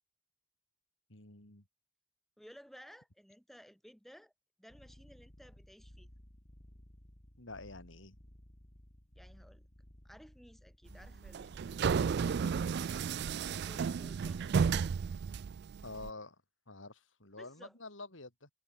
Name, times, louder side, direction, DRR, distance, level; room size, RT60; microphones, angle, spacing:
voice 1, 1.1-1.6 7.4-8.2 15.8-16.4 16.7-18.5, left 3 dB, 90° left, 5.0 m, -48 dB
voice 2, 2.4-4.3 4.6-6.1 9.2-9.7 10.0-12.9 13.5-15.1 17.4-17.8, equal, ahead, 3.4 m, -57 dB
sound 1, 4.7-13.2, equal, 35° left, 3.4 m, -58 dB
sound 2, 11.1-16.1, right 6 dB, 60° right, 0.4 m, -33 dB
head